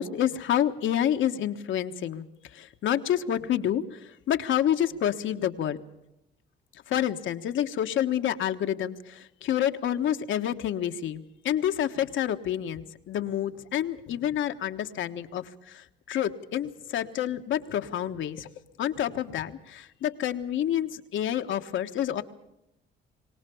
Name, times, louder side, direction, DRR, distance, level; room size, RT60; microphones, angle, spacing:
voice 1, 0.0-2.3 2.5-5.8 6.9-18.5 18.8-22.2, left 10 dB, 75° left, 8 dB, 1.4 m, -28 dB
23.0 x 18.5 x 7.0 m, 0.85 s
cardioid pair, 90°, 20 cm